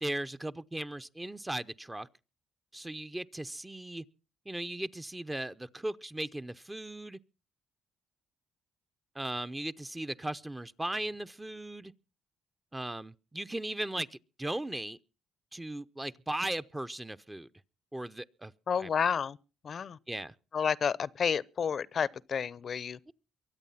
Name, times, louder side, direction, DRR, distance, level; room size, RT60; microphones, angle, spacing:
voice 1, 0.0-2.1 2.7-4.0 4.5-7.2 9.1-11.9 12.7-15.0 15.5-17.5 17.9-18.5 18.8-18.9 20.1-20.3, right 1 dB, 15° right, 0.7 m, -37 dB
voice 2, 18.7-19.4 19.6-20.0 20.5-23.0, left 7 dB, 50° left, 0.7 m, -30 dB
23.5 x 8.3 x 5.7 m
cardioid pair, 90°, 0 cm